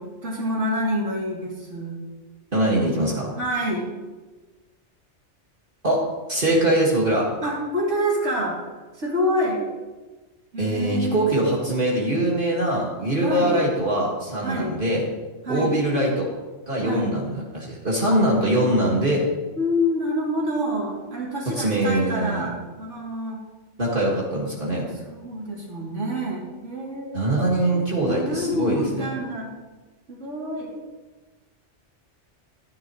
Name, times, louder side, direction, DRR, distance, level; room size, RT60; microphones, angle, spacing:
voice 1, 0.0-2.0 3.4-3.9 7.4-8.6 9.0-9.6 10.5-11.6 13.2-13.6 14.4-14.8 15.4-15.7 16.8-17.2 18.0-18.2 19.6-23.4 25.1-27.6 28.1-29.5 30.1-30.7, equal, 80° right, -5 dB, 3.4 m, -27 dB
voice 2, 2.5-3.3 5.8-6.0 6.3-7.3 10.6-15.0 15.5-16.3 16.7-19.2 21.6-22.5 23.8-24.9 27.1-29.1, right 1 dB, 45° right, -5 dB, 2.2 m, -22 dB
14.5 x 11.0 x 3.2 m, 1.2 s
omnidirectional pair, 1.2 m